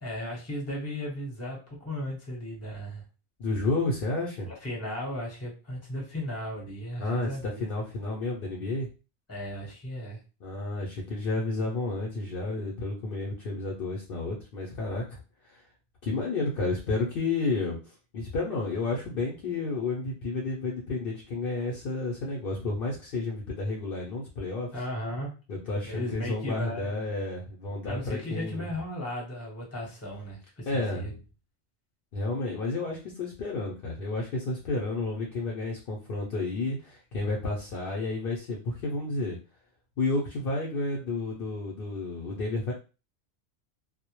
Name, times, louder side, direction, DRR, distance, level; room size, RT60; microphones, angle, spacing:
voice 1, 0.0-3.0 4.5-7.6 9.3-10.2 24.7-25.3 25.8-26.9 27.9-31.1, left 1 dB, 15° left, -3 dB, 0.7 m, -36 dB
voice 2, 3.4-4.5 7.0-7.3 7.6-8.9 10.4-15.2 15.4-15.6 16.0-24.7 25.5-28.7 30.7-31.2 32.1-39.4 40.0-42.7, left 2 dB, 60° left, -3 dB, 0.6 m, -31 dB
2.1 x 2.0 x 2.8 m, 0.32 s
omnidirectional pair, 1.2 m